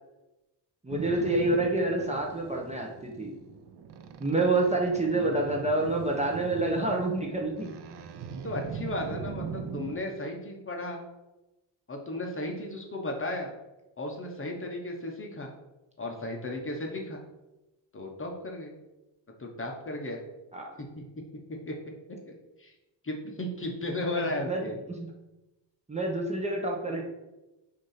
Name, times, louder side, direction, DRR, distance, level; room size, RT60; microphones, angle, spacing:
voice 1, 0.8-3.3 4.2-7.7 20.5-20.7 24.2-24.6 25.0-25.1 25.9-27.0, right 2 dB, 15° right, -1 dB, 0.9 m, -28 dB
Boat Water vehicle, 0.9-9.9, right 6 dB, 60° right, 0.6 m, -40 dB
voice 2, 8.4-11.0 11.9-13.6 14.0-15.5 16.0-17.2 17.9-18.8 19.4-20.2 20.8-21.8 22.3-22.7 23.0-24.8, left 1 dB, 30° left, 1 dB, 1.0 m, -35 dB
6.3 x 2.8 x 5.7 m, 0.99 s
cardioid pair, 120°, 45 cm